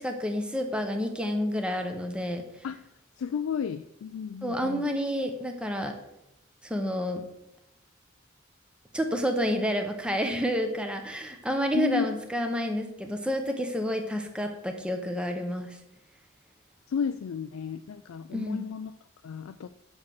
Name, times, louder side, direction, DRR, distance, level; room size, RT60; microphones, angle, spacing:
voice 1, 0.0-2.4 4.4-5.9 6.6-7.2 8.9-15.8 18.3-18.7, equal, 5° right, 4 dB, 0.8 m, -29 dB
voice 2, 3.2-4.8 11.7-12.1 16.9-18.9 19.2-19.7, left 7 dB, 80° left, 10 dB, 0.4 m, -32 dB
7.3 x 6.0 x 5.9 m, 0.88 s
head